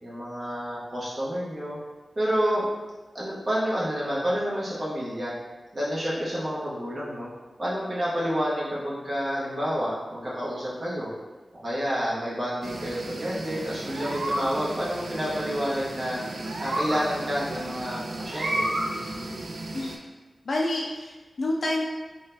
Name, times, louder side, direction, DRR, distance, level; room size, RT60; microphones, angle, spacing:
voice 1, 0.0-1.8 2.1-2.6 3.1-5.3 5.7-7.3 7.6-11.1 11.6-16.2 16.6-18.7, equal, 40° right, -8 dB, 1.0 m, -29 dB
sound 1, 12.6-20.0, right 1 dB, 70° right, 0.4 m, -32 dB
voice 2, 20.4-21.8, left 1 dB, 65° left, -2 dB, 0.3 m, -28 dB
3.9 x 2.3 x 2.6 m, 1.2 s
wide cardioid pair, 120°, 0 cm